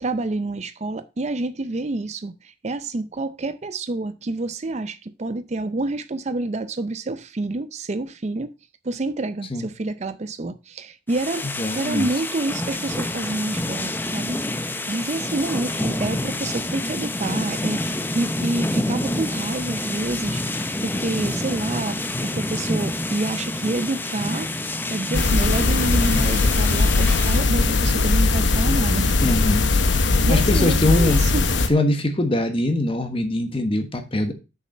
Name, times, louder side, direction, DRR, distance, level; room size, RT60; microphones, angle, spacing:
voice 1, 0.0-8.5 8.8-11.5 11.7-20.4 20.8-29.2 29.9-31.4, right 2 dB, 40° right, 0.5 m, -28 dB
sound 1, 11.1-27.4, left 1 dB, 10° left, 0.5 m, -28 dB
voice 2, 11.6-12.1 29.2-29.7 30.3-31.2 31.7-34.3, left 1 dB, 30° left, 1.2 m, -22 dB
sound 2, 25.1-31.7, left 3 dB, 90° left, 0.9 m, -19 dB
6.5 x 5.4 x 5.4 m
head